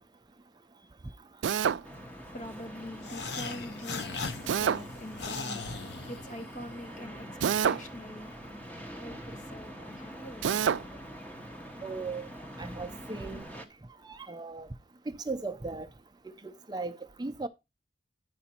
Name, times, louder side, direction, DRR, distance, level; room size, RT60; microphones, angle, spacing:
Drill, 1.4-1.8 4.5-4.8 7.4-7.9 10.4-10.8, right 7 dB, 85° right, 0.3 m, -26 dB
voice 1, 1.5-11.2, left 1 dB, 40° left, 0.9 m, -45 dB
sound 1, 1.8-13.7, equal, 10° left, 0.8 m, -45 dB
sound 2, 3.0-6.7, left 4 dB, 65° left, 0.7 m, -39 dB
voice 2, 11.8-12.3 12.6-13.4 14.0-14.7 15.1-15.9 16.4-17.5, right 3 dB, 20° right, 0.5 m, -37 dB
9.4 x 4.9 x 4.3 m
head